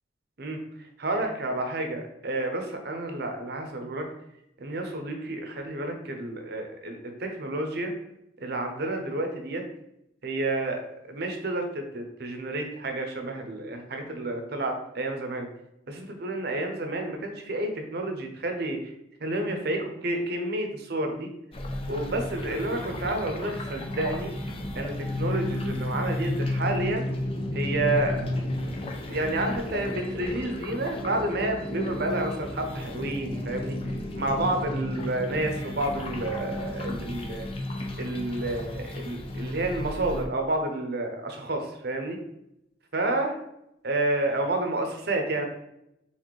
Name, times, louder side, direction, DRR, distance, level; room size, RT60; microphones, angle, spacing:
voice 1, 1.0-4.1 4.6-7.9 8.4-9.6 10.2-15.5 15.9-18.9 19.2-21.3 21.9-24.3 24.7-27.1 27.5-28.2 29.1-33.8 34.1-37.5 38.0-42.2 42.9-43.3 43.8-45.4, right 2 dB, 55° right, 4 dB, 0.7 m, -30 dB
sound 1, 21.5-40.2, left 1 dB, 30° left, 0.5 m, -34 dB
sound 2, 23.8-29.3, left 2 dB, 70° left, 0.6 m, -33 dB
4.2 x 3.7 x 3.1 m, 0.83 s
head